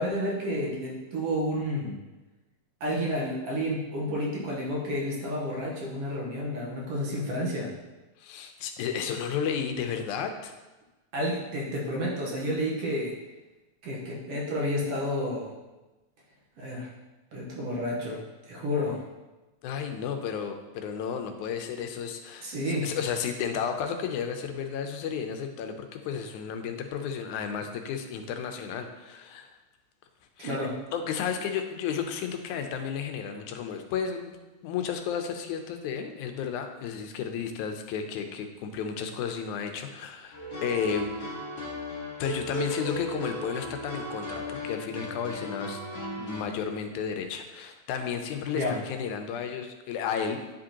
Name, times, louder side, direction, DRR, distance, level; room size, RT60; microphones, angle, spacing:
voice 1, 0.0-2.0 2.8-7.7 11.1-13.2 13.8-15.5 16.6-16.9 17.3-19.0 22.4-22.9 30.4-30.8 48.5-48.8, equal, 60° right, -3 dB, 1.9 m, -30 dB
voice 2, 8.2-10.5 19.6-29.5 30.4-30.6 30.9-34.4 34.6-41.1 42.2-45.8 46.2-50.4, left 7 dB, 90° left, 6 dB, 2.1 m, -33 dB
sound 1, 40.3-46.4, equal, 40° left, 1.9 m, -36 dB
10.0 x 5.1 x 2.9 m, 1.1 s
omnidirectional pair, 3.4 m